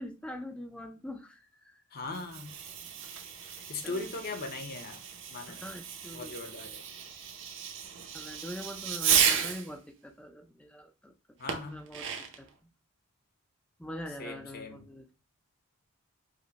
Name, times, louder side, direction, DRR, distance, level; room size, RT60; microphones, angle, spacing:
voice 1, 0.0-1.8 3.8-4.1 5.5-6.4 6.6-6.8 8.1-11.1 11.7-12.1 12.4-12.5 13.8-15.0, left 1 dB, 5° left, 0.4 m, -43 dB
voice 2, 1.9-2.5 3.4-5.0 5.3-5.6 6.1-6.8 11.4-11.8 14.2-14.8, left 3 dB, 45° left, 0.7 m, -39 dB
Fireworks, 2.0-9.7 11.5-12.5, right 8 dB, 60° right, 0.7 m, -33 dB
5.0 x 2.1 x 4.0 m
head